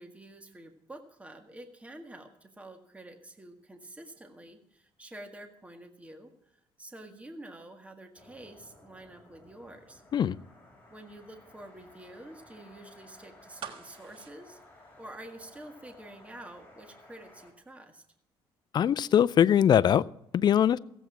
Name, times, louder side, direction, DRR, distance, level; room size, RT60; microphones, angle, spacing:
voice 1, 0.0-10.0 10.9-14.6 15.0-18.0, right 1 dB, 15° right, 5 dB, 1.7 m, -48 dB
sound 1, 8.1-17.5, left 2 dB, 15° left, 6.7 m, -56 dB
sound 2, 13.6-15.6 15.9-16.0, right 8 dB, 65° right, 1.5 m, -46 dB
voice 2, 18.7-20.0 20.3-20.8, left 9 dB, 50° left, 20 dB, 0.5 m, -22 dB
16.0 x 8.1 x 5.9 m, 0.83 s
cardioid pair, 90°, 10 cm